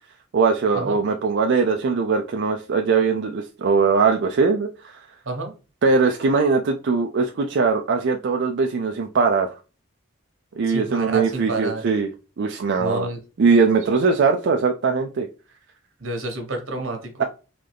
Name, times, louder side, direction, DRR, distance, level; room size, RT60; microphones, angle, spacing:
voice 1, 0.3-4.9 5.8-9.5 10.6-12.1 12.4-13.1 13.4-15.3, right 4 dB, 60° right, 3 dB, 0.4 m, -20 dB
voice 2, 10.7-11.8 12.8-13.2 16.0-17.2, right 2 dB, 85° right, 4 dB, 1.3 m, -29 dB
3.8 x 3.2 x 3.4 m, 0.33 s
head